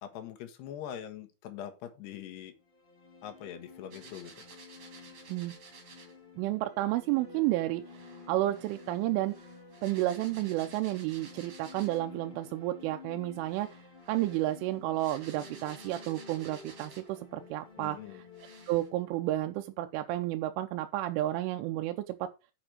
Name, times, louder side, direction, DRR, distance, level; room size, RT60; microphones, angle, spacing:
voice 1, 0.0-2.5 3.2-4.5 17.8-18.2, left 10 dB, 70° left, 3.2 m, -43 dB
sound 1, 2.6-20.5, left 4 dB, 85° left, 0.4 m, -51 dB
sound 2, 3.9-6.2 7.9-12.2 13.4-17.2 17.8-17.9 18.3-18.9, right 4 dB, 40° right, 2.6 m, -53 dB
voice 2, 6.4-9.3 9.8-13.8 14.1-18.0 18.7-22.3, right 16 dB, 85° right, 3.2 m, -31 dB
8.7 x 5.9 x 6.2 m
omnidirectional pair, 5.5 m